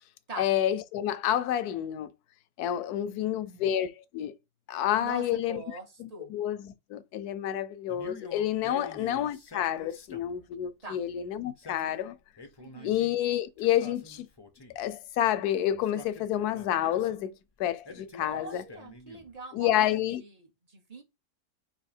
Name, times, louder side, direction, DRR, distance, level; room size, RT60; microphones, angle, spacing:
voice 1, 0.4-2.1 2.6-4.3 4.7-5.6 6.0-12.2 12.8-14.3 14.8-17.3 17.6-18.6 19.5-20.2, left 11 dB, 80° left, 1.1 m, -29 dB
voice 2, 3.1-3.6 5.0-6.3 8.6-8.9 10.8-11.0 12.6-12.9 18.2-21.0, right 3 dB, 30° right, 0.8 m, -43 dB
Male speech man speaking, 7.9-10.4 11.4-13.2 13.6-14.9 15.7-17.2 17.8-19.4, left 3 dB, 40° left, 0.3 m, -47 dB
4.0 x 2.8 x 4.2 m
omnidirectional pair, 1.6 m